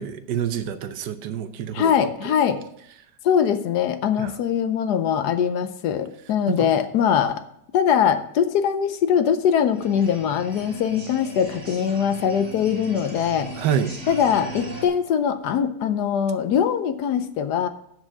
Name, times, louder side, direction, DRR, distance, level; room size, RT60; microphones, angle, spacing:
voice 1, 0.0-1.9 4.2-4.4 6.5-6.7 13.5-13.9, right 8 dB, 75° right, 11 dB, 1.3 m, -27 dB
voice 2, 1.7-2.6 3.2-7.4 7.7-13.5 14.1-17.7, left 8 dB, 70° left, 10 dB, 1.1 m, -22 dB
sound 1, 9.5-14.9, right 2 dB, 20° right, 1.5 m, -38 dB
7.6 x 6.2 x 7.3 m, 0.72 s
omnidirectional pair, 1.9 m